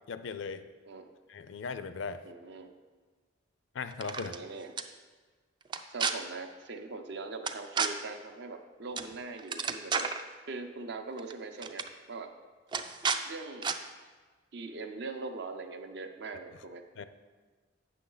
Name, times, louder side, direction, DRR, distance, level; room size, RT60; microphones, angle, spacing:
voice 1, 0.1-0.7 1.3-2.2 3.7-4.4 17.0-17.1, left 5 dB, 70° left, 12 dB, 0.4 m, -38 dB
voice 2, 0.8-1.2 2.2-2.7 4.2-4.7 5.9-10.1 10.5-12.3 13.3-13.7 14.5-16.8, right 3 dB, 60° right, 6 dB, 0.6 m, -41 dB
sound 1, 3.9-4.4 4.8-4.9 5.7-6.1 7.5-7.9 9.0-9.1 9.4-10.2 11.2-11.3 11.6-11.9 12.7-13.2 13.6-13.8, right 5 dB, 25° right, 0.3 m, -31 dB
8.4 x 6.1 x 3.9 m, 1.4 s
head